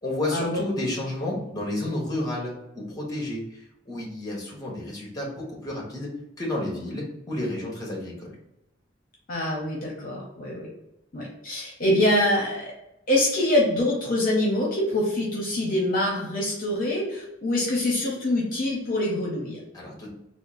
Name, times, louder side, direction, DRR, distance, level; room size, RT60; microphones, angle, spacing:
voice 1, 0.0-6.1 6.4-8.3 19.7-20.1, left 1 dB, 20° left, -2 dB, 1.1 m, -31 dB
voice 2, 9.3-10.7 11.1-12.7 13.1-19.6, left 1 dB, 45° left, -3 dB, 0.8 m, -25 dB
3.6 x 2.0 x 3.9 m, 0.86 s
head